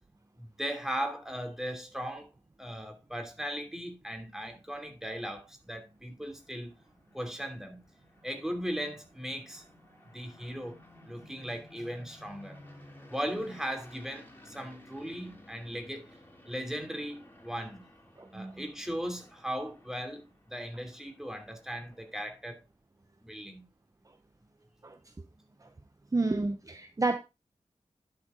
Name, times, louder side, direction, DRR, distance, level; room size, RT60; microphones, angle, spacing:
voice 1, 0.4-2.3 2.6-6.7 7.1-7.8 8.2-9.6 10.1-10.8 11.0-12.6 13.1-16.1 16.5-17.9 18.3-22.6 23.2-23.6, equal, 5° right, 2.8 m, -38 dB
sound 1, 5.5-22.6, left 1 dB, 20° left, 3.2 m, -56 dB
voice 2, 18.2-18.6 24.8-25.0 25.6-25.7 26.1-27.2, right 3 dB, 30° right, 0.8 m, -30 dB
11.0 x 6.8 x 3.7 m
wide cardioid pair, 90°, 12 cm